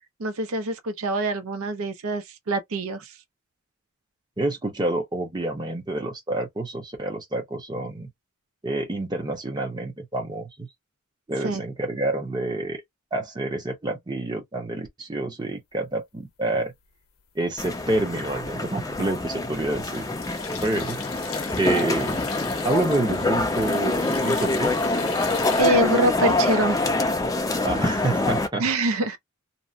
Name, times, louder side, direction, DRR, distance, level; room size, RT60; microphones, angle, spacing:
voice 1, 0.2-3.1 11.4-11.6 25.6-27.0 28.6-29.2, right 2 dB, 85° right, 0.6 m, -25 dB
voice 2, 4.4-8.1 8.6-10.7 11.3-12.8 13.1-16.7 17.3-20.0 20.6-21.0 21.6-22.2 22.6-24.7 27.6-28.6, right 2 dB, 20° right, 0.7 m, -28 dB
sound 1, 17.5-18.1 18.4-25.6, left 7 dB, 80° left, 0.7 m, -39 dB
sound 2, 17.6-28.5, left 2 dB, 15° left, 0.5 m, -25 dB
2.8 x 2.1 x 2.5 m
head